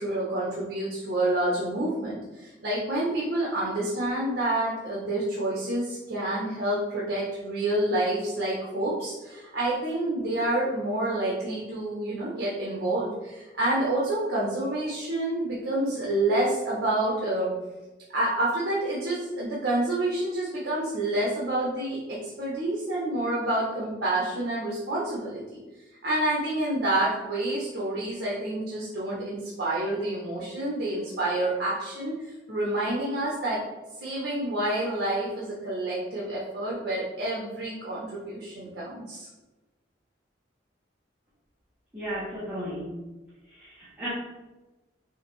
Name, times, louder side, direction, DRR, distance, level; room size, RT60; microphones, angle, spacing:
voice 1, 0.0-17.5 18.1-25.6 26.0-32.1 32.5-33.6 34.0-39.3, right 1 dB, 70° right, -5 dB, 0.9 m, -28 dB
voice 2, 41.9-42.9 43.5-44.1, right 1 dB, 10° right, -12 dB, 1.0 m, -34 dB
4.8 x 2.7 x 3.0 m, 1.1 s
head